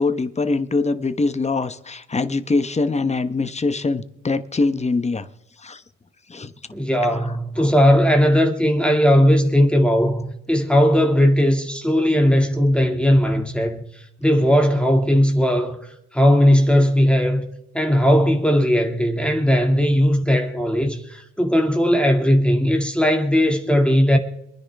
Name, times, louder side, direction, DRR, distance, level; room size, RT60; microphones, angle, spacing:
voice 1, 0.0-5.3 5.6-5.8 6.3-6.5 7.1-7.2 7.6-7.7, left 3 dB, 20° left, 1.2 m, -23 dB
voice 2, 6.7-17.5 17.7-24.2, equal, 5° left, 2.4 m, -18 dB
26.5 x 10.0 x 3.6 m
cardioid pair, 90°, 30 cm